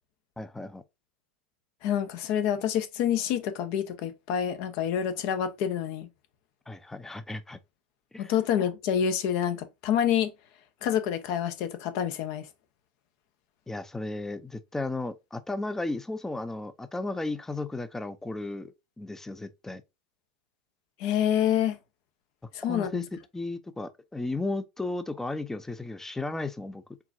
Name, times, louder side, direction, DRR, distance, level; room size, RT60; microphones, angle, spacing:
voice 1, 0.4-0.8 6.7-7.6 8.1-8.3 13.7-19.8 22.7-23.0 23.3-26.8, left 2 dB, 10° left, 0.6 m, -34 dB
voice 2, 1.8-6.1 8.2-10.3 10.8-12.5 21.0-21.8 22.5-23.0, left 9 dB, 60° left, 0.9 m, -27 dB
4.6 x 3.5 x 2.6 m
hypercardioid pair, 100°, 5 cm